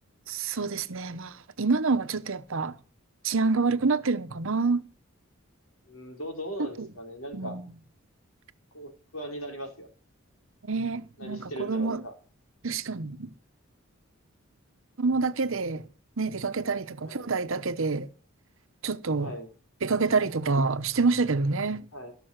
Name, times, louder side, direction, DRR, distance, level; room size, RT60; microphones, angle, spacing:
voice 1, 0.3-2.7 3.2-4.8 6.6-6.9 7.3-7.6 10.6-12.0 12.6-13.3 15.0-15.8 16.2-18.1 18.8-19.3 19.8-21.8, right 4 dB, 70° right, 0.9 m, -27 dB
voice 2, 5.9-7.6 8.7-9.9 11.2-12.1 17.0-17.3 19.2-19.5 21.9-22.1, equal, 75° left, 4.6 m, -39 dB
16.5 x 7.0 x 6.5 m
head